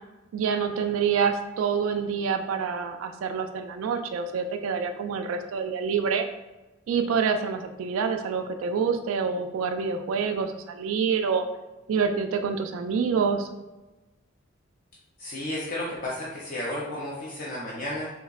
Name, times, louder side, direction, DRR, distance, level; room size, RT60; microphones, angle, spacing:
voice 1, 0.3-6.3 6.9-11.5 11.9-13.5, right 6 dB, 85° right, 7 dB, 0.3 m, -27 dB
voice 2, 15.2-18.1, left 1 dB, 45° left, -6 dB, 0.5 m, -33 dB
3.5 x 2.1 x 2.3 m, 1.1 s
head